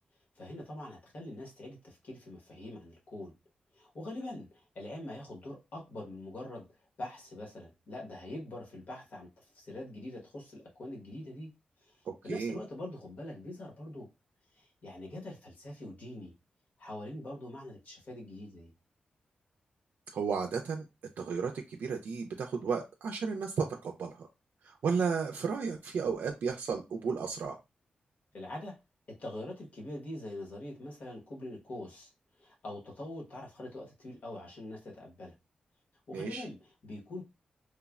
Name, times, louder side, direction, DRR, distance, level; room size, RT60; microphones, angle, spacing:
voice 1, 0.3-3.4 3.7-6.7 7.0-11.5 11.8-14.1 14.5-16.3 16.8-18.7 28.3-28.8 29.1-32.1 32.4-35.3 36.1-37.2, left 1 dB, 60° left, 1.0 m, -44 dB
voice 2, 12.1-12.6 20.1-20.8 21.2-24.3 24.6-27.6 36.1-36.5, right 5 dB, 80° right, 0.3 m, -33 dB
3.1 x 2.0 x 2.3 m
wide cardioid pair, 145°, 3 cm